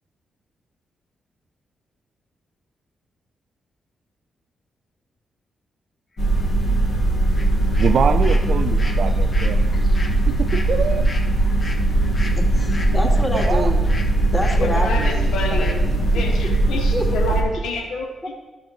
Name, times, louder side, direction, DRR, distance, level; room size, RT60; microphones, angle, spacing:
sound 1, 6.2-17.4, right 1 dB, 65° left, 1.8 m, -19 dB
sound 2, 7.3-7.5 7.7-14.1 14.4-14.6 15.0-15.2 15.6-15.8, left 2 dB, 40° left, 1.2 m, -37 dB
voice 1, 7.8-9.7 10.3-11.1 13.0-13.8, right 6 dB, 65° right, 12 dB, 0.4 m, -25 dB
voice 2, 12.4-13.8 14.3-16.5 16.9-17.3, equal, 15° left, -1 dB, 2.0 m, -28 dB
voice 3, 14.6-15.8 16.1-18.3, left 3 dB, 90° left, 3 dB, 0.8 m, -28 dB
11.5 x 6.6 x 3.1 m, 1.2 s
cardioid pair, 70°, 0 cm